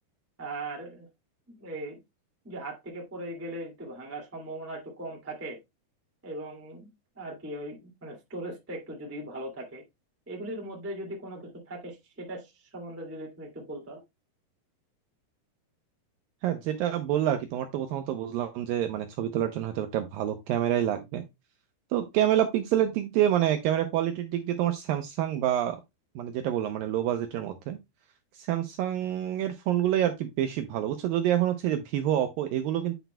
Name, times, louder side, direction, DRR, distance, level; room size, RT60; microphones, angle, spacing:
voice 1, 0.4-1.1 1.5-2.0 2.4-5.6 6.2-6.9 7.1-9.8 10.3-14.0, right 1 dB, 20° right, 0.4 m, -39 dB
voice 2, 16.4-21.3 21.9-25.8 26.2-27.8 28.3-32.9, right 11 dB, 80° right, 2.1 m, -27 dB
9.2 x 6.0 x 2.2 m
omnidirectional pair, 4.7 m